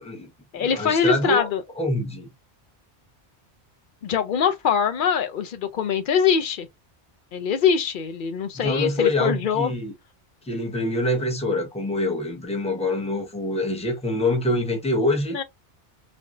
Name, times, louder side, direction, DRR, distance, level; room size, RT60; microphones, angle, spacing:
voice 1, 0.0-1.5 1.8-2.3 8.5-9.9 10.4-15.4, left 2 dB, 5° left, 0.8 m, -25 dB
voice 2, 0.5-1.6 4.0-6.7 7.3-9.7 15.3-15.4, left 7 dB, 55° left, 0.6 m, -23 dB
3.3 x 2.6 x 2.4 m
omnidirectional pair, 1.1 m